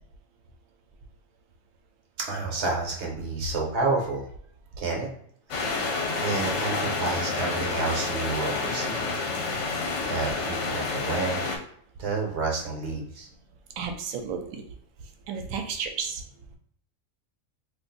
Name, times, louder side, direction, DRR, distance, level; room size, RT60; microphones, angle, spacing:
voice 1, 2.2-4.3 4.8-5.1 5.5-5.9 6.2-9.0 10.1-11.4 12.0-13.3, right 3 dB, 60° right, 0 dB, 1.0 m, -30 dB
sound 1, 5.5-11.6, left 3 dB, 70° left, 0.9 m, -29 dB
voice 2, 13.8-14.6 15.3-16.2, right 6 dB, 85° right, 5 dB, 1.0 m, -32 dB
2.5 x 2.4 x 3.9 m, 0.65 s
omnidirectional pair, 1.4 m